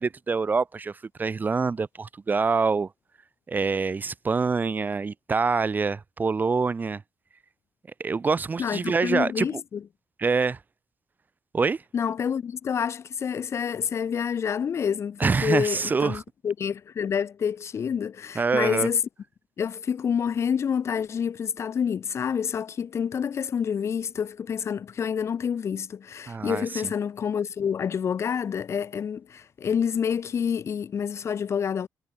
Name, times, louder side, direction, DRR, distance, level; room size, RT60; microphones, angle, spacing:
voice 1, 0.0-2.9 3.5-7.0 8.0-9.6 10.2-10.6 11.5-11.8 15.2-16.2 18.4-18.9 26.3-26.9, right 4 dB, 30° right, 0.8 m, -25 dB
voice 2, 8.6-9.8 11.9-19.0 19.6-31.9, left 7 dB, 50° left, 1.2 m, -28 dB
cardioid pair, 95°, 6 cm